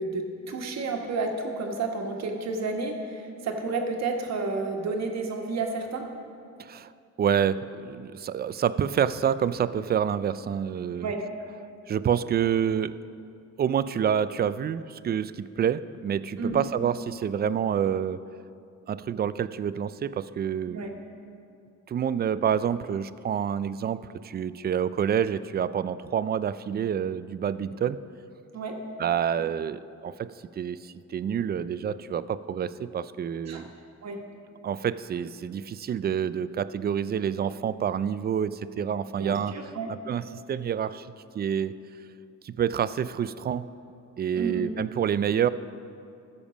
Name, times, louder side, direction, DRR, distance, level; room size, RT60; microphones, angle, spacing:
voice 1, 0.0-6.0 11.0-11.2 16.4-16.7 20.7-20.9 28.5-28.8 33.5-33.6 34.0-34.2 39.2-39.9 44.3-44.7, right 3 dB, 60° right, 3 dB, 1.4 m, -31 dB
voice 2, 6.6-6.9 7.2-11.1 11.9-13.0 13.6-18.2 18.9-20.8 21.9-28.0 29.0-30.3 30.6-33.7 34.6-39.5 40.1-41.1 41.3-41.7 42.4-43.7 44.2-45.5, right 8 dB, 35° right, 15 dB, 0.4 m, -28 dB
14.0 x 7.2 x 5.1 m, 2.5 s
cardioid pair, 90°, 30 cm